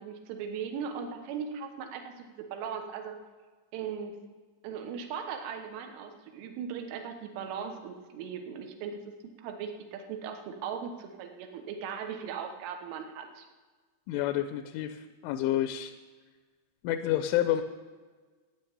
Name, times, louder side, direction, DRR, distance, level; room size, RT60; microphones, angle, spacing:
voice 1, 0.0-3.2 3.7-4.2 4.6-13.5, right 7 dB, 85° right, 5 dB, 3.7 m, -38 dB
voice 2, 14.1-15.9 16.8-17.6, left 12 dB, 85° left, 9 dB, 3.1 m, -29 dB
15.0 x 9.5 x 6.7 m, 1.4 s
omnidirectional pair, 5.5 m